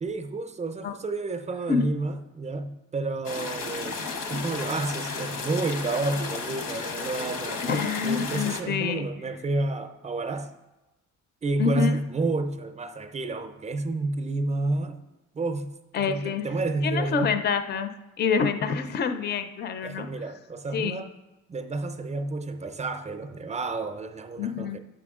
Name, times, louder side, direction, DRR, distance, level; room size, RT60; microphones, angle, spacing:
voice 1, 0.0-10.5 11.4-15.0 15.3-17.4 18.6-18.9 19.8-21.1 21.5-24.8, right 2 dB, 20° right, 8 dB, 0.5 m, -30 dB
sound 1, 3.2-8.6, left 4 dB, 85° left, 1.1 m, -33 dB
voice 2, 7.6-9.1 11.6-12.0 15.9-16.4 16.8-17.9 18.2-20.1 20.7-21.0 24.4-24.8, left 6 dB, 35° left, 9 dB, 0.5 m, -27 dB
9.8 x 6.9 x 3.6 m, 1.0 s
cardioid pair, 140°, 31 cm